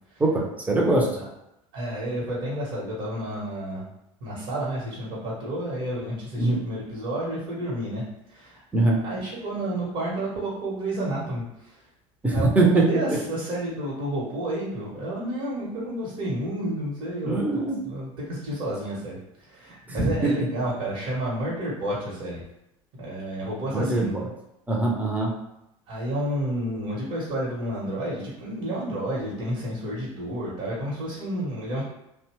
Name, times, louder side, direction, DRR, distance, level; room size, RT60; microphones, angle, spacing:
voice 1, 0.2-1.1 6.4-6.6 8.7-9.0 12.2-12.9 17.2-17.8 20.0-20.3 23.7-24.2 24.7-25.3, right 2 dB, 10° right, -1 dB, 0.6 m, -22 dB
voice 2, 1.7-3.9 4.2-8.6 9.0-11.8 12.3-22.4 22.9-24.1 25.9-31.8, right 1 dB, 50° right, -5 dB, 1.0 m, -31 dB
2.7 x 2.2 x 3.0 m, 0.84 s
figure-of-eight pair, 75°, 17 cm